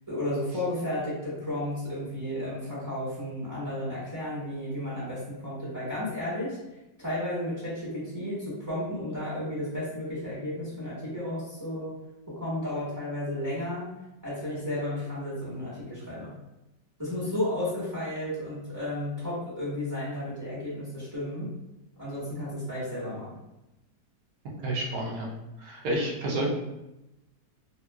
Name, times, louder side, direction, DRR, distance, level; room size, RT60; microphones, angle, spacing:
voice 1, 0.1-6.6 7.0-11.9 12.3-13.9 14.2-16.3 17.0-21.5 22.0-23.3, left 1 dB, 10° right, -10 dB, 1.1 m, -33 dB
voice 2, 24.6-25.3 25.6-26.5, right 1 dB, 65° right, -2 dB, 1.1 m, -29 dB
2.8 x 2.7 x 2.3 m, 0.93 s
omnidirectional pair, 1.9 m